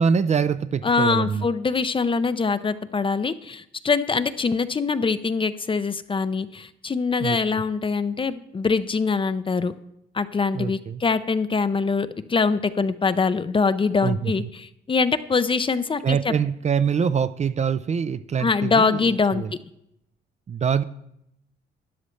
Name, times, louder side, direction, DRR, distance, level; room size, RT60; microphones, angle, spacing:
voice 1, 0.0-1.5 7.2-7.6 10.5-11.0 14.0-14.5 16.0-19.5 20.5-20.8, right 6 dB, 35° right, 13 dB, 0.4 m, -24 dB
voice 2, 0.8-9.7 10.1-16.3 18.4-19.4, left 4 dB, 25° left, 13 dB, 0.5 m, -23 dB
13.0 x 10.0 x 3.2 m, 0.79 s
cardioid pair, 90°, 20 cm